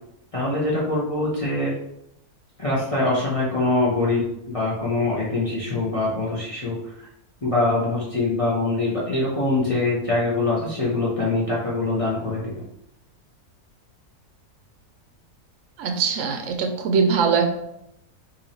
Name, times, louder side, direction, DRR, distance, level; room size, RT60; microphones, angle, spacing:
voice 1, 0.3-1.7 2.6-7.1 7.4-12.5, left 2 dB, 35° left, -6 dB, 0.6 m, -24 dB
voice 2, 15.8-17.5, right 5 dB, 65° right, 4 dB, 0.8 m, -21 dB
2.9 x 2.7 x 4.0 m, 0.79 s
omnidirectional pair, 1.6 m